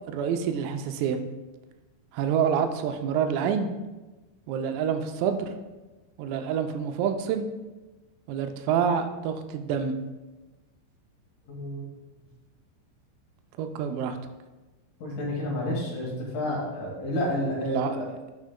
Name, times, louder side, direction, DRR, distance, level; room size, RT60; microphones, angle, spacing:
voice 1, 0.1-1.2 2.1-3.7 4.5-5.5 6.2-7.5 8.3-10.0 13.6-14.2 17.6-18.1, right 7 dB, 85° right, 6 dB, 3.3 m, -27 dB
voice 2, 11.5-11.9 15.0-18.0, left 1 dB, 65° left, -4 dB, 2.0 m, -30 dB
14.0 x 6.2 x 2.2 m, 1.1 s
omnidirectional pair, 5.8 m